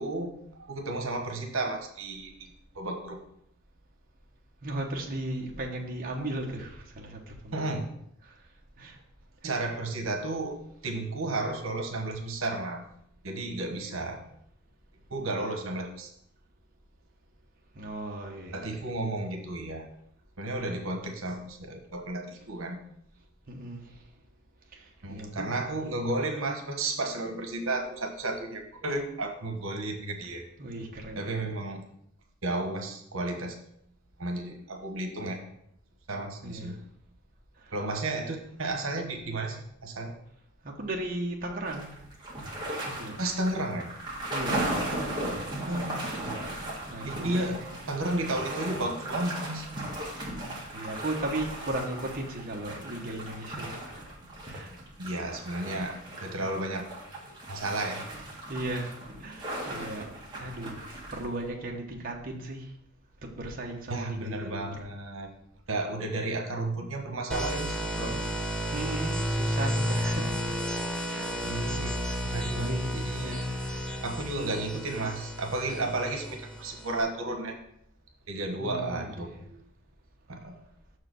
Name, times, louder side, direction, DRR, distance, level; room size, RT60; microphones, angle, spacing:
voice 1, 0.0-3.2 7.5-7.9 9.4-10.6 10.8-12.8 13.2-14.2 15.1-16.1 18.5-19.9 20.4-22.8 25.0-30.4 31.2-31.8 32.4-33.6 34.2-35.4 36.1-36.8 37.7-40.1 43.2-43.9 45.7-46.4 47.1-47.6 47.9-49.7 55.0-56.9 57.5-58.1 63.9-65.3 65.7-68.3 71.4-72.0 72.2-73.4 74.0-77.6 78.3-79.6 80.3-80.6, right 2 dB, 80° right, 4 dB, 1.2 m, -33 dB
voice 2, 4.6-7.8 8.2-8.3 8.8-9.0 9.4-9.5 17.7-19.0 23.5-23.9 24.7-25.6 30.6-31.6 36.4-36.8 37.6-37.9 40.6-41.9 42.8-43.2 44.3-44.7 46.9-47.7 50.3-54.0 54.4-54.7 58.5-62.7 63.2-64.9 68.7-70.3 71.0-71.4 72.6-74.2 78.6-79.4, right 1 dB, 45° right, 0 dB, 1.1 m, -37 dB
sound 1, 41.7-61.5, right 1 dB, 20° right, 1.8 m, -37 dB
sound 2, 67.3-77.0, equal, 5° left, 0.6 m, -32 dB
6.7 x 4.8 x 6.2 m, 0.71 s
head